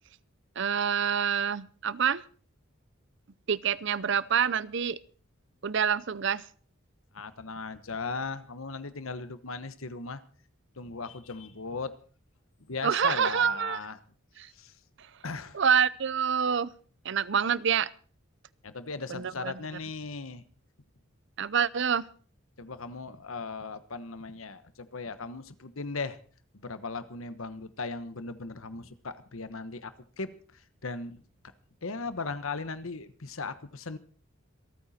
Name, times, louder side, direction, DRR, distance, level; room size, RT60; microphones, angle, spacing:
voice 1, 0.6-2.2 3.5-5.0 5.6-6.4 12.8-13.8 14.4-14.5 15.5-16.7 17.0-17.9 19.1-19.5 21.4-22.1, right 7 dB, 60° right, 0.6 m, -27 dB
voice 2, 7.1-10.2 10.8-11.9 12.7-14.0 14.5-14.7 15.2-15.6 18.6-20.4 22.6-26.2 26.5-31.2 31.8-34.0, left 4 dB, 80° left, 1.3 m, -38 dB
27.0 x 9.2 x 4.3 m
head